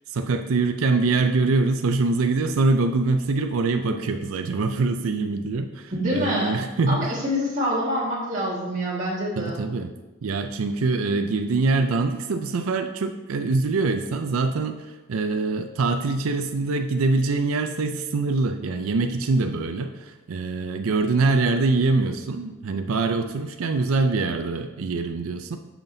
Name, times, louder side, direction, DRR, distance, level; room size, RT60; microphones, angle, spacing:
voice 1, 0.1-7.1 9.4-9.9 10.2-25.6, right 3 dB, 80° right, 7 dB, 0.4 m, -24 dB
voice 2, 5.9-6.5 6.9-9.5, equal, 35° right, -8 dB, 1.7 m, -26 dB
10.5 x 5.8 x 2.7 m, 1.1 s
head